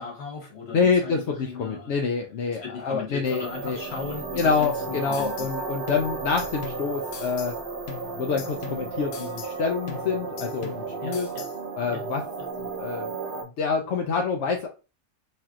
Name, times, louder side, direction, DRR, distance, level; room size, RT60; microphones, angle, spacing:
voice 1, 0.0-1.9 2.5-5.5 11.0-11.5 11.9-12.0, left 5 dB, 50° left, 1.5 m, -37 dB
voice 2, 0.7-3.8 4.4-7.5 8.2-11.3 11.8-12.2 12.6-13.1 13.4-14.7, left 5 dB, 65° left, 0.8 m, -27 dB
sound 1, 3.2-13.4, right 4 dB, 45° right, 0.7 m, -34 dB
sound 2, 3.9-5.6 5.9-7.6 7.9-9.6 9.9-11.6, left 8 dB, 85° left, 1.1 m, -42 dB
4.3 x 3.1 x 2.4 m
omnidirectional pair, 1.5 m